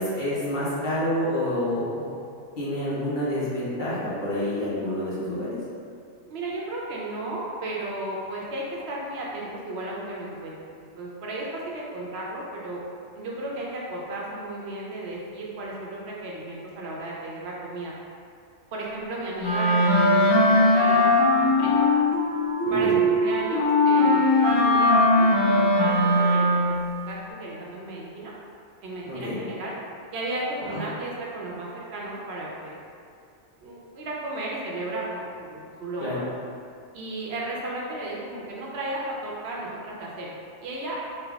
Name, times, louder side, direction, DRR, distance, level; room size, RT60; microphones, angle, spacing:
voice 1, 0.0-2.1 2.6-5.6 22.7-23.0 29.1-29.4 30.6-30.8 36.0-36.2, left 1 dB, 50° left, -10 dB, 1.0 m, -28 dB
voice 2, 6.2-12.8 13.1-17.9 18.7-21.9 22.7-26.8 27.1-28.3 28.8-29.8 30.1-32.8 33.6-36.3 36.9-41.0, right 2 dB, 70° right, -4 dB, 0.8 m, -34 dB
Wind instrument woodwind instrument, 19.4-26.8, left 1 dB, 30° left, 0.5 m, -20 dB
3.3 x 2.2 x 3.4 m, 2.4 s
omnidirectional pair, 1.2 m